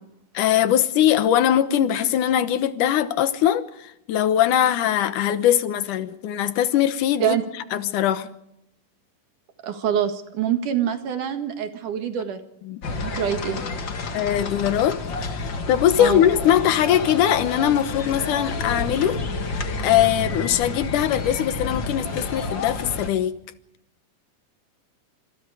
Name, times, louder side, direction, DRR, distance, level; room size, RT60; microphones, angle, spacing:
voice 1, 0.3-7.4 7.7-8.3 12.7-12.8 14.1-19.2 19.8-23.4, left 11 dB, 75° left, 2.6 m, -21 dB
voice 2, 9.6-12.4 12.9-13.6 16.0-16.3, right 9 dB, 70° right, 3.1 m, -25 dB
sound 1, 12.8-23.1, left 3 dB, 40° left, 2.1 m, -30 dB
26.0 x 26.0 x 5.0 m
omnidirectional pair, 3.9 m